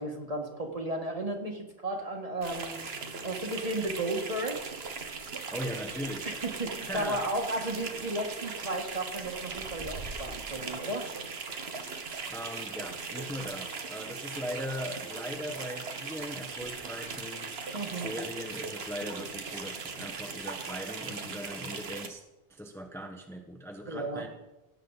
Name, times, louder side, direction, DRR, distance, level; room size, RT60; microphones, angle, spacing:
voice 1, 0.0-2.8 3.2-4.8 6.2-11.7 17.7-18.1 23.8-24.2, right 1 dB, 35° right, 2 dB, 1.7 m, -34 dB
sound 1, 2.4-22.1, right 4 dB, 65° right, 1.4 m, -39 dB
voice 2, 5.5-6.3 6.9-7.3 12.3-17.5 17.9-22.2 22.5-24.3, equal, ahead, 3 dB, 1.0 m, -39 dB
16.5 x 8.7 x 4.0 m, 1.0 s
omnidirectional pair, 1.2 m